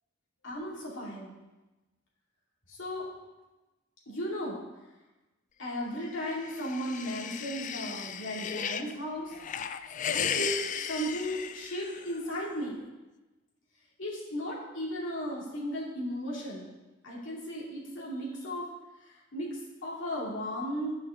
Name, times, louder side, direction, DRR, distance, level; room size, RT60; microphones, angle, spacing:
voice 1, 0.4-1.4 2.7-3.1 4.1-4.6 5.6-9.3 10.1-12.8 14.0-16.7 17.0-18.6 19.0-20.9, equal, 65° left, -5 dB, 2.8 m, -35 dB
sound 1, 6.2-8.9 9.3-12.2, left 8 dB, 40° left, 0.4 m, -35 dB
12.0 x 5.7 x 3.8 m, 1.1 s
head